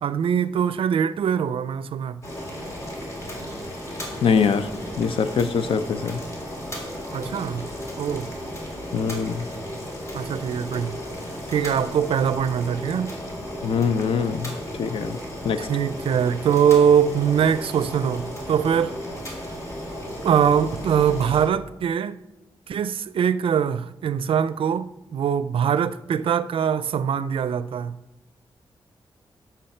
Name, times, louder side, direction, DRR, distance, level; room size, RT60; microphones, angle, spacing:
voice 1, 0.0-2.2 7.1-7.7 8.0-8.3 10.1-11.0 11.5-13.2 15.6-19.0 20.2-22.2 22.7-28.0, right 8 dB, 75° right, 0.4 m, -22 dB
Boiling, 2.2-21.5, equal, 35° left, 2.0 m, -34 dB
voice 2, 4.2-4.7 5.0-6.2 8.9-9.5 13.6-15.2 15.4-15.6, left 6 dB, 75° left, 0.6 m, -23 dB
12.0 x 6.0 x 4.4 m
wide cardioid pair, 170°, 9 cm